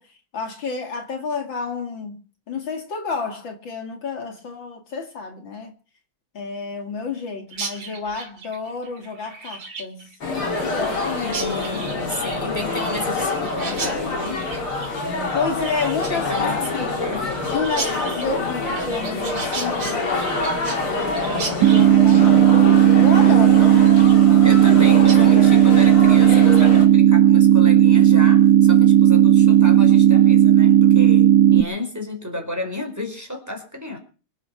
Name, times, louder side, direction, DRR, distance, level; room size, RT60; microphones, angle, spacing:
voice 1, 0.0-2.2 2.5-5.7 6.3-10.1 10.6-11.7 15.3-16.9 17.5-20.3 20.9-24.0 24.4-24.7, left 5 dB, 65° left, 3.0 m, -30 dB
Chirp tweet, 7.5-24.8 25.1-25.2 25.5-25.9 26.3-26.8, right 4 dB, 85° right, 3.8 m, -36 dB
sound 1, 10.2-26.9, left 3 dB, 85° left, 4.8 m, -26 dB
voice 2, 11.3-14.4 16.1-17.3 23.7-34.0, left 2 dB, 5° right, 4.9 m, -32 dB
sound 2, 21.6-31.6, right 11 dB, 55° right, 1.3 m, -13 dB
25.5 x 9.1 x 6.0 m
omnidirectional pair, 2.3 m